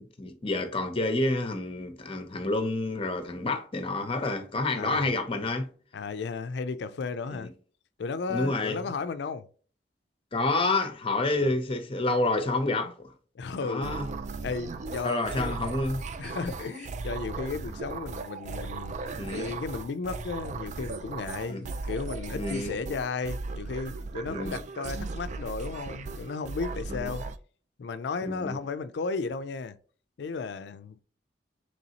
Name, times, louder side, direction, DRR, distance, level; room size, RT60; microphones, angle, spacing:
voice 1, 0.0-5.7 7.3-7.5 8.3-8.8 10.3-13.1 13.6-14.1 15.0-16.0 19.1-19.6 21.5-21.7 22.3-22.7 24.3-24.6 26.9-27.1 28.2-28.6, left 2 dB, 30° left, 0.7 m, -29 dB
voice 2, 4.7-5.1 5.9-7.5 8.0-9.5 11.4-11.5 12.8-12.9 13.4-14.0 14.4-15.6 16.2-19.0 19.3-27.2 27.8-29.8 30.2-31.0, left 4 dB, 70° left, 0.4 m, -34 dB
sound 1, 13.8-27.4, right 3 dB, 45° right, 0.3 m, -37 dB
4.0 x 3.1 x 2.8 m
head